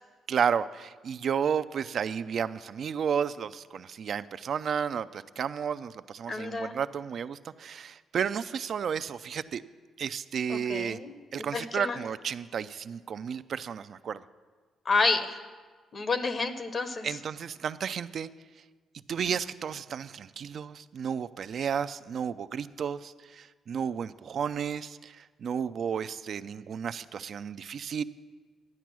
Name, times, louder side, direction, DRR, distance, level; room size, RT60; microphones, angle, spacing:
voice 1, 0.3-9.6 10.0-11.0 11.3-14.2 17.0-18.3 19.1-28.0, right 7 dB, 55° right, 13 dB, 0.4 m, -32 dB
voice 2, 6.3-6.7 10.5-12.0 14.8-15.4 15.9-17.1, left 3 dB, 40° left, 10 dB, 0.9 m, -29 dB
12.0 x 9.2 x 6.1 m, 1.4 s
cardioid pair, 90°, 0 cm